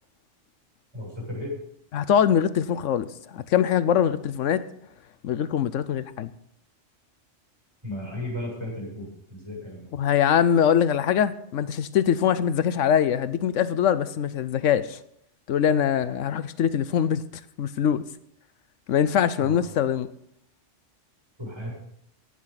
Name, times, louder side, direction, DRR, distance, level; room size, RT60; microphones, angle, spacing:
voice 1, 0.9-1.6 7.8-9.9 19.4-19.6 21.4-21.7, left 1 dB, 20° right, 8.0 m, -35 dB
voice 2, 1.9-3.1 3.3-4.6 5.2-6.3 10.0-15.0 15.5-17.2 17.6-18.0 18.9-20.1, left 9 dB, 85° left, 1.1 m, -23 dB
18.0 x 12.5 x 4.1 m
omnidirectional pair, 1.3 m